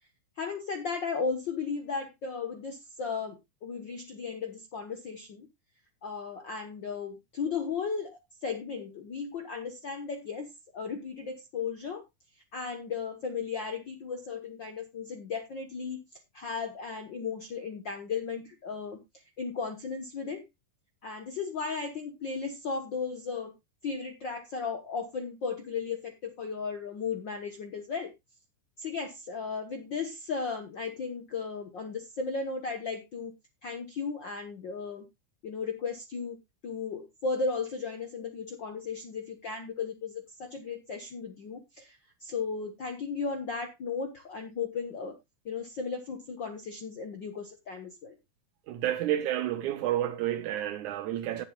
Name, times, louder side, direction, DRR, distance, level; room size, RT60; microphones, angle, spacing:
voice 1, 0.4-5.5 6.0-10.5 10.7-12.0 12.5-19.0 19.4-20.4 21.0-23.5 23.8-28.1 28.8-33.3 33.6-35.1 35.4-36.4 36.6-45.1 45.4-48.2, left 5 dB, 60° left, 1.2 m, -35 dB
voice 2, 48.7-51.5, right 12 dB, 70° right, 2.1 m, -30 dB
18.0 x 7.6 x 2.3 m
omnidirectional pair, 3.9 m